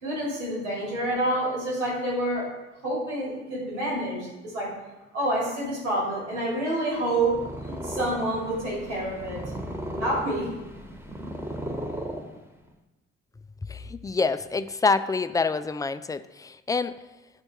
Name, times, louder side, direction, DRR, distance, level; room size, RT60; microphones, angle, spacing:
voice 1, 0.0-2.5 2.8-4.7 5.1-7.3 7.7-9.4 10.0-10.5, right 1 dB, 80° right, -4 dB, 2.8 m, -28 dB
Purr, 7.0-12.7, equal, 5° right, 1.3 m, -36 dB
voice 2, 13.7-16.9, left 4 dB, 10° left, 12 dB, 0.3 m, -26 dB
10.0 x 4.4 x 4.4 m, 1.0 s
figure-of-eight pair, 45°, 35 cm